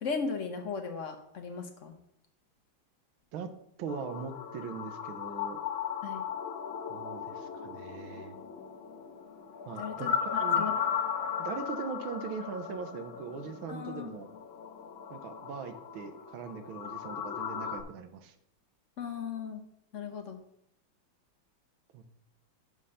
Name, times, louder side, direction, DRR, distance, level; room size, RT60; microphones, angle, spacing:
voice 1, 0.0-1.9 6.0-6.2 9.8-10.7 13.7-14.1 19.0-19.6 19.9-20.4, left 5 dB, 55° left, 5 dB, 0.8 m, -37 dB
voice 2, 3.8-5.6 6.9-8.4 9.6-10.7 11.4-14.3 15.1-18.3 21.9-22.1, right 6 dB, 85° right, 9 dB, 1.6 m, -41 dB
sound 1, 3.9-17.8, left 8 dB, 85° left, 1.7 m, -36 dB
5.5 x 5.5 x 6.3 m, 0.74 s
omnidirectional pair, 2.2 m